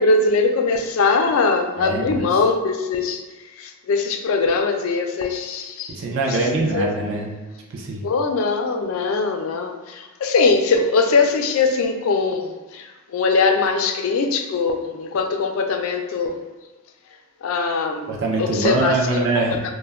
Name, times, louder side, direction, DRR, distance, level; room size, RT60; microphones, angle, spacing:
voice 1, 0.0-3.2 3.6-6.0 6.3-6.9 8.0-16.3 17.4-18.1 18.4-19.7, left 4 dB, 70° left, 4 dB, 0.3 m, -21 dB
voice 2, 1.8-2.3 5.9-7.3 7.7-8.0 18.1-19.6, right 3 dB, 60° right, -1 dB, 0.4 m, -23 dB
2.2 x 2.1 x 3.4 m, 1.2 s
head